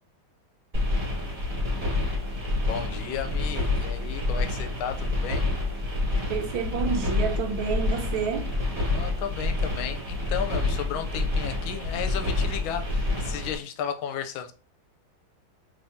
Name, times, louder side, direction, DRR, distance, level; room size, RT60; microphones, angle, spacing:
sound 1, 0.7-13.6, left 2 dB, 25° right, 2.1 m, -28 dB
voice 1, 2.5-5.5 8.9-14.5, left 8 dB, 80° left, 1.4 m, -34 dB
voice 2, 6.3-8.5, right 6 dB, 80° right, 1.4 m, -29 dB
3.5 x 3.5 x 2.7 m
omnidirectional pair, 2.2 m